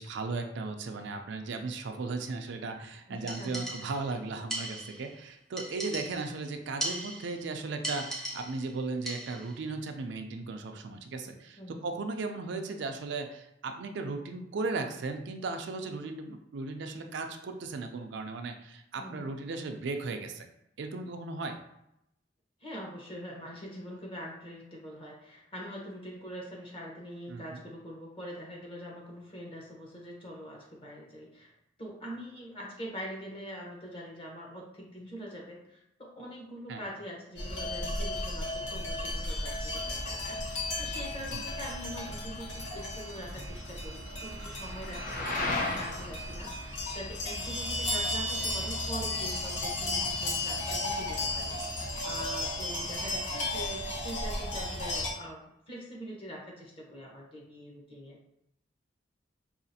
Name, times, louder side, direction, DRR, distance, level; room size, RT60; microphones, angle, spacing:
voice 1, 0.0-20.5 20.8-21.6 27.3-27.6 36.7-36.8 41.3-41.4, right 3 dB, 70° right, 5 dB, 0.4 m, -36 dB
voice 2, 3.1-3.6 11.6-11.9 19.0-19.3 22.6-31.5 31.8-58.2, equal, 30° left, -2 dB, 1.0 m, -44 dB
sound 1, 3.3-4.1 4.5-5.1 5.6-6.4 6.8-7.5 7.8-8.7 9.1-9.6, right 1 dB, 5° left, 0.6 m, -38 dB
sound 2, 37.4-55.1, left 1 dB, 70° left, 0.9 m, -34 dB
sound 3, 40.2-50.2, left 2 dB, 50° left, 0.6 m, -40 dB
4.9 x 2.5 x 2.7 m, 0.80 s
head